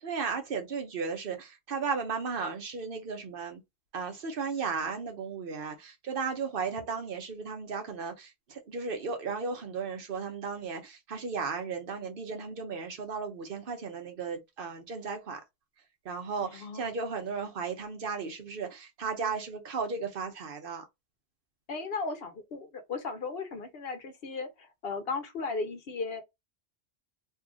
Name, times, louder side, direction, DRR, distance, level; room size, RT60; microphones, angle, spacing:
voice 1, 0.0-3.6 3.9-15.4 16.0-20.8, right 5 dB, 60° right, 0.9 m, -35 dB
voice 2, 16.4-16.9 21.7-26.2, left 4 dB, 65° left, 1.0 m, -36 dB
2.7 x 2.4 x 3.7 m
omnidirectional pair, 1.1 m